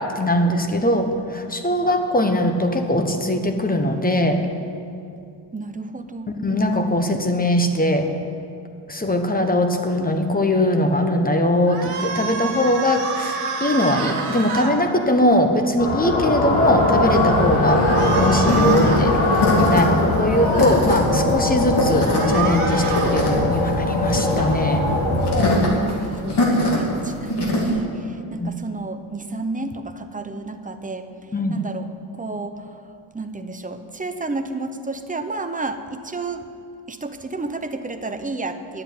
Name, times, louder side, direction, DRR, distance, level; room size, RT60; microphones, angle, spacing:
voice 1, 0.0-4.4 6.3-8.1 8.9-17.8 18.1-24.9 28.4-28.5 31.3-31.6, left 1 dB, 15° left, 5 dB, 1.1 m, -21 dB
voice 2, 5.5-6.3 25.8-32.8 33.1-36.4 36.9-38.8, right 3 dB, 15° right, 8 dB, 0.7 m, -31 dB
sound 1, 11.7-14.7 17.8-19.1 20.2-20.8 21.9-23.1, right 5 dB, 90° right, 1.8 m, -28 dB
sound 2, 15.8-25.6, left 1 dB, 80° left, 2.1 m, -20 dB
sound 3, 17.1-27.7, left 1 dB, 55° left, 2.7 m, -24 dB
10.5 x 7.8 x 9.3 m, 2.4 s
cardioid pair, 105°, 49 cm